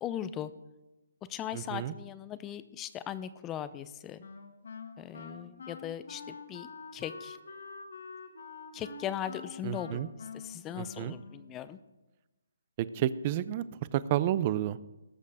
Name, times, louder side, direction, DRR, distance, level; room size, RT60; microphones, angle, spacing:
voice 1, 0.0-0.5 1.3-4.2 5.0-7.4 8.7-10.0 10.3-11.8, left 10 dB, 15° left, 14 dB, 0.6 m, -39 dB
voice 2, 1.5-1.9 9.6-10.1 10.8-11.1 12.8-13.6 13.9-14.8, right 12 dB, 30° right, 16 dB, 0.5 m, -30 dB
Wind instrument woodwind instrument, 4.2-11.6, left 4 dB, 70° left, 1.7 m, -46 dB
18.5 x 6.5 x 4.8 m, 1.1 s
hypercardioid pair, 155°, 0 cm